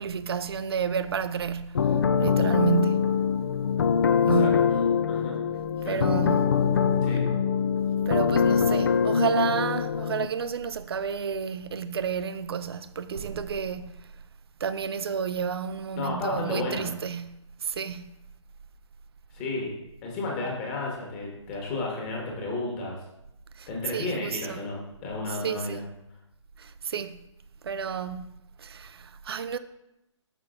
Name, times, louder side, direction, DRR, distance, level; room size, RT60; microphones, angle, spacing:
voice 1, 0.0-3.3 4.2-4.7 5.8-6.6 8.1-13.9 14.6-18.1 23.6-24.6 25.3-25.9 26.6-27.2 27.6-28.3 28.6-29.6, right 6 dB, 50° right, 0.4 m, -31 dB
sound 1, 1.7-10.3, left 7 dB, 45° left, 0.4 m, -23 dB
voice 2, 4.4-4.7 5.1-5.4 5.8-6.0 7.0-7.2 16.0-16.9 19.3-19.7 20.0-23.0 23.7-25.8, left 2 dB, 20° left, 1.3 m, -32 dB
5.8 x 5.8 x 3.8 m
hypercardioid pair, 155°, 16 cm